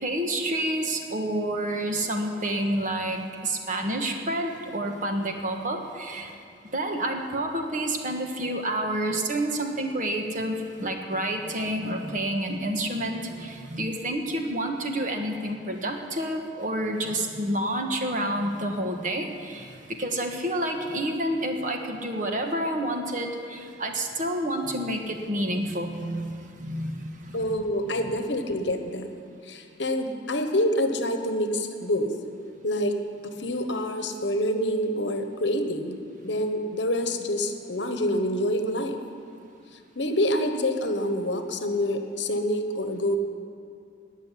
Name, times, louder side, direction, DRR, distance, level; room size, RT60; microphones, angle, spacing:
voice 1, 0.0-6.3 6.7-27.5, right 1 dB, 45° right, 3 dB, 1.4 m, -29 dB
voice 2, 27.3-29.1 29.5-32.1 32.6-33.0 33.2-35.9 36.2-39.0 40.0-43.2, left 1 dB, 70° left, 6 dB, 1.2 m, -27 dB
17.5 x 6.5 x 9.9 m, 2.4 s
head